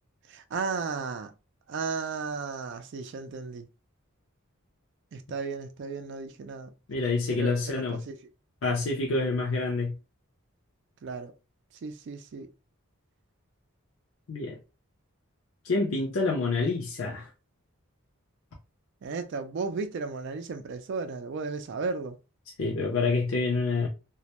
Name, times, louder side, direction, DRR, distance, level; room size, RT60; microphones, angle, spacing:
voice 1, 0.3-1.3 1.7-3.7 5.1-6.7 7.3-8.2 11.0-11.3 11.8-12.5 19.0-22.2, right 4 dB, 55° right, 0.3 m, -34 dB
voice 2, 6.9-8.0 8.6-10.0 14.3-14.6 15.6-17.3 22.6-23.9, left 3 dB, 65° left, 0.5 m, -27 dB
2.2 x 2.0 x 2.8 m
head